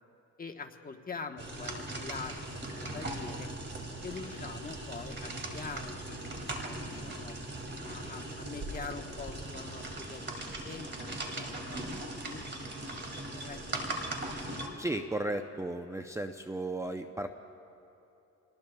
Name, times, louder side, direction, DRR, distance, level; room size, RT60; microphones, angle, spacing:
voice 1, 0.4-3.5 4.0-7.4 7.9-12.7 13.3-14.0, left 5 dB, 30° left, 4 dB, 1.2 m, -45 dB
sound 1, 1.4-14.7, right 2 dB, 35° right, 2.5 m, -39 dB
sound 2, 2.4-8.6, right 3 dB, 65° right, 1.7 m, -51 dB
voice 2, 14.8-17.3, right 1 dB, 10° right, 6 dB, 0.6 m, -35 dB
27.5 x 19.5 x 2.3 m, 2.9 s
cardioid pair, 90°, 30 cm